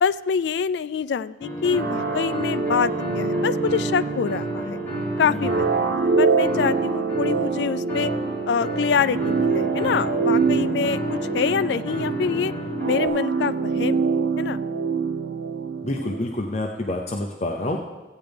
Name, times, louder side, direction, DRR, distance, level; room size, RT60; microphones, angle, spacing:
voice 1, 0.0-4.8 5.2-5.8 6.2-8.1 8.5-12.5 12.9-14.1 14.4-14.6, left 6 dB, 70° left, 15 dB, 0.3 m, -25 dB
sound 1, 1.4-13.1, right 1 dB, 15° left, 4.4 m, -31 dB
sound 2, 1.7-16.3, right 4 dB, 75° right, 0.5 m, -25 dB
voice 2, 5.2-5.7 15.8-17.8, left 1 dB, 40° left, 1 dB, 0.6 m, -28 dB
15.5 x 9.1 x 3.5 m, 1.2 s
head